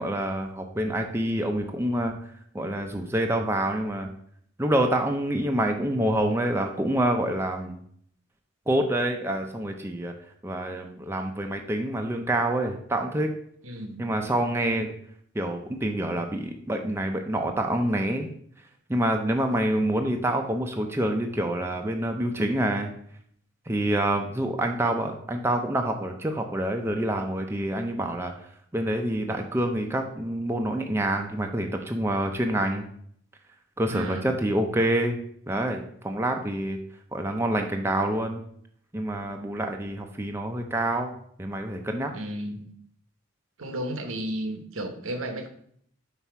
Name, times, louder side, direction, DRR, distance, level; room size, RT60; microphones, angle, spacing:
voice 1, 0.0-2.1 2.5-4.1 4.6-7.8 8.7-10.1 10.4-13.3 14.0-14.9 15.3-18.3 18.9-22.9 23.7-28.3 28.7-32.9 33.8-35.2 35.5-36.8 37.1-38.4 38.9-41.1 41.4-42.1, right 1 dB, 10° right, 3 dB, 0.4 m, -27 dB
voice 2, 13.6-14.0 33.9-34.3 42.1-42.7 43.6-45.5, right 1 dB, 80° right, 6 dB, 0.9 m, -33 dB
5.7 x 4.1 x 4.6 m, 0.65 s
head